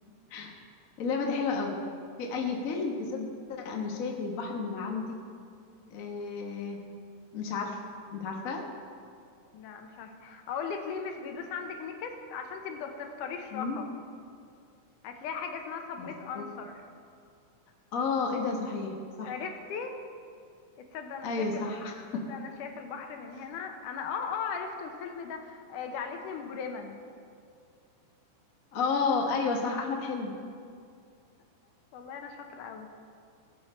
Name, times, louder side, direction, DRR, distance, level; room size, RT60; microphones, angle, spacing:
voice 1, 1.0-1.7 2.2-5.2 5.9-6.8 7.3-7.8 8.1-8.6 13.5-13.8 16.0-16.5 17.9-19.3 21.2-22.2 28.7-30.3, left 4 dB, 60° left, 1 dB, 0.8 m, -32 dB
voice 2, 9.5-14.0 15.0-16.8 19.2-20.0 20.9-21.7 22.1-27.0 31.9-32.9, left 6 dB, 80° left, 4 dB, 2.5 m, -38 dB
19.0 x 7.5 x 4.3 m, 2.3 s
omnidirectional pair, 3.7 m